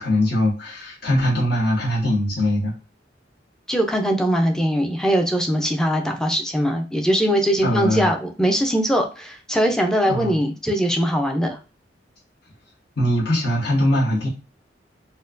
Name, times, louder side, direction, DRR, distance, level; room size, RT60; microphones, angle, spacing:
voice 1, 0.0-2.7 7.6-8.1 10.1-10.3 13.0-14.3, left 1 dB, 60° left, -6 dB, 1.3 m, -21 dB
voice 2, 3.7-11.6, equal, 5° left, 2 dB, 0.5 m, -21 dB
4.2 x 2.2 x 2.5 m, 0.32 s
head